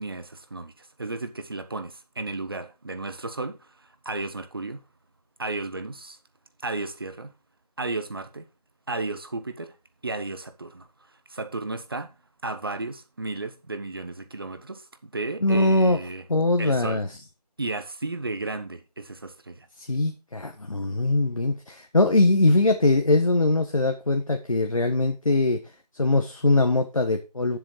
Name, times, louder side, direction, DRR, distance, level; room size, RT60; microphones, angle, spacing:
voice 1, 0.0-4.8 5.4-6.2 6.6-7.3 7.8-8.4 8.9-9.7 10.0-10.9 11.3-12.1 12.4-16.2 16.6-17.0 17.6-19.7, right 3 dB, 35° right, 1.2 m, -33 dB
voice 2, 15.4-16.0 16.3-17.1 19.8-25.6 26.0-27.6, left 2 dB, 55° left, 1.5 m, -22 dB
9.8 x 7.7 x 4.7 m
figure-of-eight pair, 165°, 21 cm